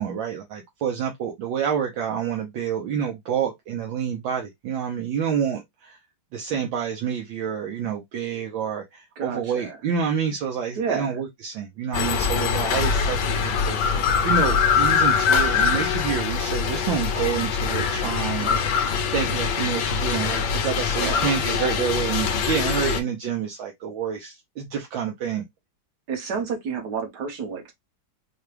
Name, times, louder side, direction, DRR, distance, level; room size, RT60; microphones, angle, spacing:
voice 1, 0.0-6.0 6.3-18.5 19.1-25.4, right 7 dB, 75° right, 1.5 m, -28 dB
voice 2, 9.2-9.8 10.8-11.2 18.4-18.7 20.9-21.3 26.1-27.7, right 6 dB, 55° right, 1.8 m, -30 dB
sound 1, 11.9-23.0, left 6 dB, 65° left, 1.2 m, -23 dB
4.8 x 2.3 x 3.2 m
omnidirectional pair, 2.2 m